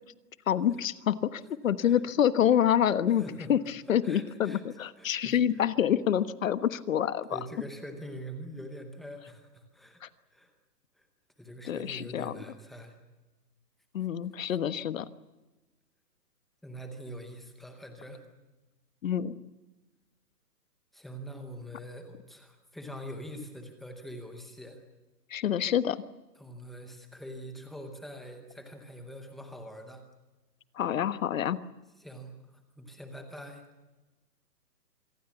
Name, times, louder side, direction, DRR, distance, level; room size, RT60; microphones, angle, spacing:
voice 1, 0.5-3.2 3.5-3.6 3.9-7.3 10.0-10.1 11.6-12.4 13.9-15.1 19.0-19.3 25.3-26.0 30.8-31.6, left 9 dB, 50° left, 14 dB, 1.4 m, -27 dB
voice 2, 3.2-3.5 3.8-4.6 5.0-5.6 7.3-10.0 10.3-10.5 11.0-11.1 11.4-13.0 16.6-18.3 20.9-24.8 26.4-30.0 32.0-33.6, equal, ahead, 5 dB, 0.7 m, -44 dB
25.5 x 23.0 x 7.2 m, 1.1 s
hypercardioid pair, 155°, 49 cm